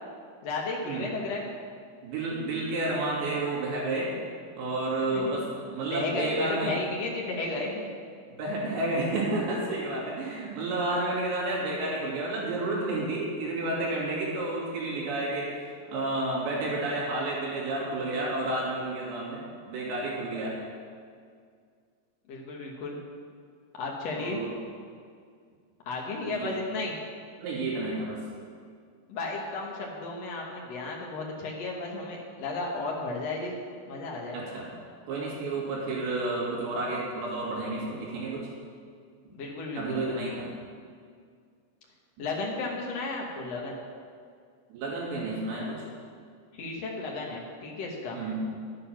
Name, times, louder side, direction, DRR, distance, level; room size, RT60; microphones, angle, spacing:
voice 1, 0.4-1.5 5.1-5.4 5.9-7.9 22.3-23.0 23.8-24.4 25.8-27.0 29.1-33.6 33.9-34.4 39.3-40.0 42.2-43.8 46.6-48.2, left 3 dB, 75° left, -2 dB, 1.5 m, -33 dB
voice 2, 2.0-4.1 4.6-5.4 5.7-6.8 8.4-20.5 24.2-24.5 26.3-26.5 27.4-28.2 34.3-34.7 35.1-38.5 39.8-40.5 44.7-45.8 48.1-48.5, right 2 dB, 75° right, -5 dB, 4.8 m, -31 dB
11.0 x 9.6 x 5.8 m, 2.1 s
omnidirectional pair, 5.1 m